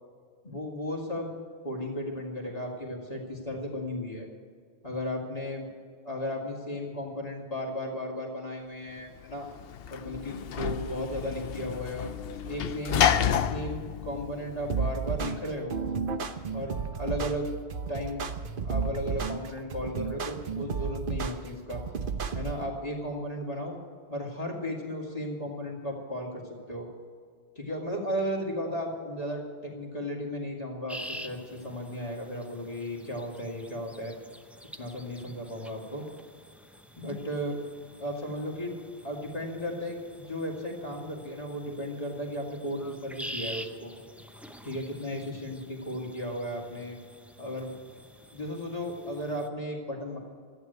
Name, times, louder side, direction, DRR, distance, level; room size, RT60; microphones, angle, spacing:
voice 1, 0.4-1.3 1.6-4.3 4.8-5.6 6.0-9.5 9.9-12.1 12.5-13.1 13.4-15.8 16.5-17.5 17.9-18.2 18.6-21.8 22.3-23.7 24.1-26.4 26.7-26.9 27.6-34.1 34.8-36.1 37.0-37.6 38.0-38.7 39.0-40.0 40.3-43.9 44.6-47.0 47.4-47.7 48.3-50.2, equal, 40° left, -2 dB, 2.4 m, -35 dB
Sliding door / Slam, 9.2-15.1, left 8 dB, 70° left, 0.8 m, -30 dB
sound 1, 14.7-22.7, right 5 dB, 60° right, 1.0 m, -32 dB
sound 2, 30.9-49.5, equal, ahead, 0.6 m, -47 dB
14.0 x 9.5 x 8.0 m, 2.1 s
omnidirectional pair, 1.0 m